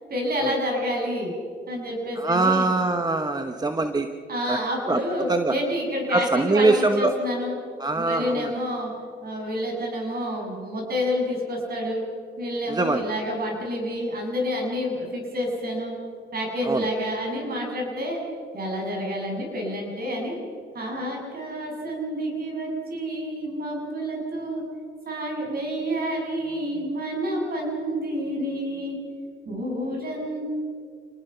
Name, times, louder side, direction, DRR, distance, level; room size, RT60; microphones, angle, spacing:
voice 1, 0.1-1.3 1.7-2.7 4.3-7.6 8.0-8.9 9.2-12.0 12.4-16.0 16.3-18.2 18.5-20.4 20.7-24.6 25.1-29.0 29.5-30.5, equal, 50° right, 0 dB, 7.7 m, -29 dB
voice 2, 2.2-4.1 4.5-4.6 4.9-5.0 5.3-5.6 6.1-7.2 7.8-8.5 12.7-13.1 16.6-16.9 26.7-26.9, right 2 dB, 20° right, 7 dB, 1.1 m, -23 dB
28.0 x 19.5 x 5.7 m, 2.3 s
cardioid pair, 90°, 20 cm